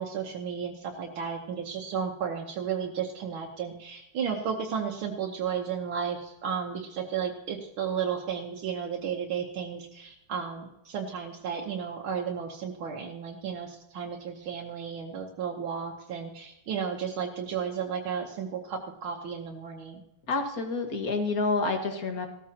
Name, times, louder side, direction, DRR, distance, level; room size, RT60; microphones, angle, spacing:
voice 1, 0.0-20.0, right 7 dB, 80° right, 0 dB, 1.9 m, -33 dB
voice 2, 20.3-22.3, left 3 dB, 50° left, 4 dB, 1.9 m, -28 dB
16.5 x 13.5 x 2.9 m, 0.88 s
omnidirectional pair, 2.2 m